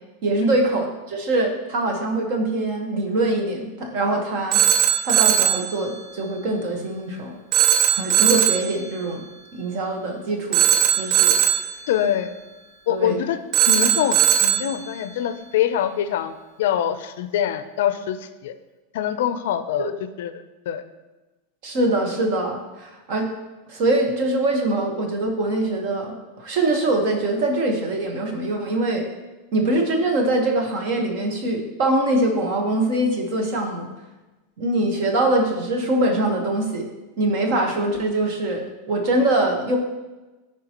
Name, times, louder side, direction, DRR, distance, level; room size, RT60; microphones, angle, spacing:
voice 1, 0.2-4.6 5.0-7.4 7.9-9.2 9.5-10.6 10.9-11.3 12.9-13.2 21.6-23.3 23.7-29.0 29.5-33.9 34.6-36.9 37.2-39.8, right 2 dB, 40° right, 2 dB, 1.3 m, -23 dB
Telephone, 4.5-5.7 7.5-8.7 10.5-11.7 13.5-14.7, right 10 dB, 25° right, 0.5 m, -18 dB
voice 2, 11.9-12.3 12.9-13.4 13.7-18.5 18.9-20.8, left 10 dB, 60° left, 11 dB, 0.5 m, -24 dB
14.0 x 4.7 x 3.0 m, 1.1 s
supercardioid pair, 180°, 0 cm